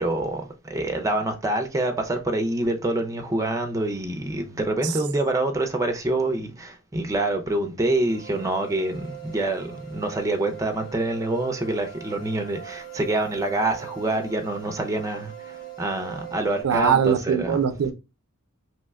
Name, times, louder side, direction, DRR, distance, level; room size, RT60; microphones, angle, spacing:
voice 1, 0.0-17.6, right 2 dB, 15° right, 0.4 m, -26 dB
sound 1, 8.1-16.6, right 9 dB, 45° left, 0.7 m, -41 dB
voice 2, 16.6-17.9, right 7 dB, 80° right, 0.4 m, -22 dB
2.9 x 2.1 x 3.4 m
head